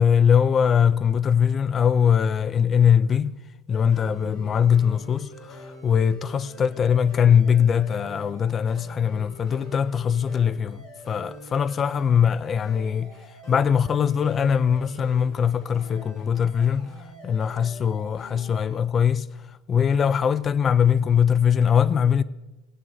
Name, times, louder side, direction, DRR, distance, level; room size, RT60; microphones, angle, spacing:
voice 1, 0.0-3.4 3.7-13.1 13.5-16.9 17.2-19.3 19.7-22.2, left 7 dB, 25° left, 0.3 m, -21 dB
sound 1, 3.7-18.8, equal, 40° left, 3.9 m, -45 dB
19.5 x 8.7 x 2.7 m
supercardioid pair, 140°, 0 cm